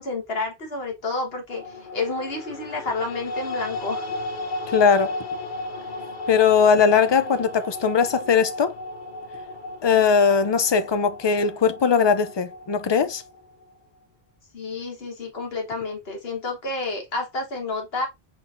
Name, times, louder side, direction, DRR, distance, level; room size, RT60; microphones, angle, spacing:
voice 1, 0.0-4.1 14.5-18.1, left 3 dB, 70° left, 1.7 m, -30 dB
sound 1, 1.5-13.7, left 2 dB, 55° left, 1.0 m, -35 dB
voice 2, 4.7-5.1 6.3-8.7 9.8-13.2, left 6 dB, 35° left, 0.5 m, -19 dB
4.8 x 4.0 x 2.6 m
omnidirectional pair, 1.1 m